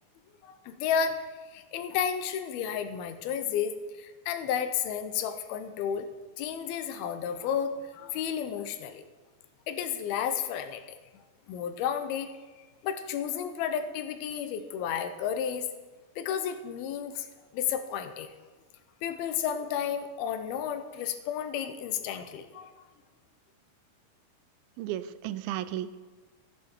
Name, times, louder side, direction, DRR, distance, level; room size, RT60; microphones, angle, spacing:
voice 1, 0.4-6.1 6.4-9.0 9.7-10.8 11.5-12.3 12.8-15.7 16.2-17.3 17.5-18.3 19.0-22.8, left 8 dB, 90° left, 10 dB, 2.7 m, -32 dB
voice 2, 24.8-26.0, right 12 dB, 85° right, 14 dB, 2.4 m, -34 dB
13.5 x 9.4 x 4.4 m, 1.3 s
omnidirectional pair, 4.2 m